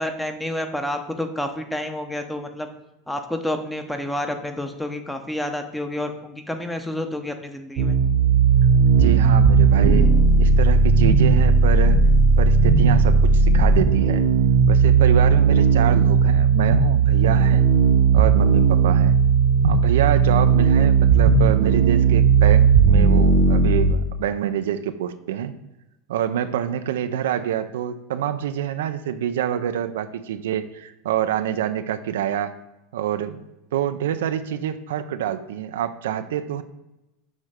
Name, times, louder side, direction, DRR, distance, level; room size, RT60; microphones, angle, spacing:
voice 1, 0.0-2.7 3.1-8.0, left 1 dB, 5° left, 7 dB, 0.8 m, -29 dB
sound 1, 7.8-23.9, right 5 dB, 50° right, 1.0 m, -16 dB
voice 2, 9.0-12.0 12.4-14.3 14.7-17.6 18.1-19.2 19.6-25.5 26.1-32.6 32.9-33.5 33.7-36.6, right 10 dB, 85° right, 10 dB, 0.4 m, -26 dB
6.3 x 3.2 x 5.0 m, 0.94 s
supercardioid pair, 115°, 0 cm